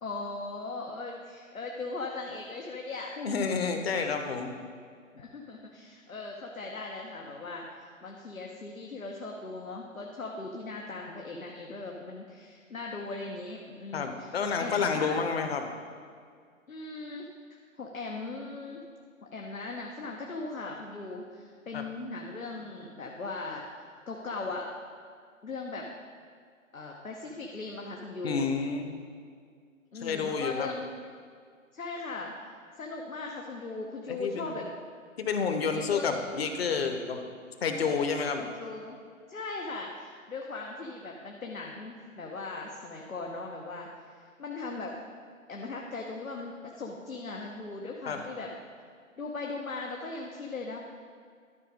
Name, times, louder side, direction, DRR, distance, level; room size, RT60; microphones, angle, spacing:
voice 1, 0.0-3.1 5.1-15.2 16.7-17.3 17.8-18.8 19.2-23.6 24.1-24.7 25.4-25.9 26.7-28.5 29.9-30.9 31.7-32.3 32.8-34.7 35.7-36.2 37.8-38.0 38.4-39.0 39.3-44.9 45.5-48.5 49.2-50.8, left 3 dB, 85° left, 0 dB, 1.1 m, -39 dB
voice 2, 3.2-4.5 13.9-15.7 21.7-21.8 28.2-28.9 30.0-30.7 34.1-34.6 35.2-37.2 37.6-38.4 48.1-48.2, left 5 dB, 50° left, 6 dB, 1.0 m, -30 dB
12.5 x 4.9 x 5.1 m, 2.1 s
figure-of-eight pair, 135°, 40 cm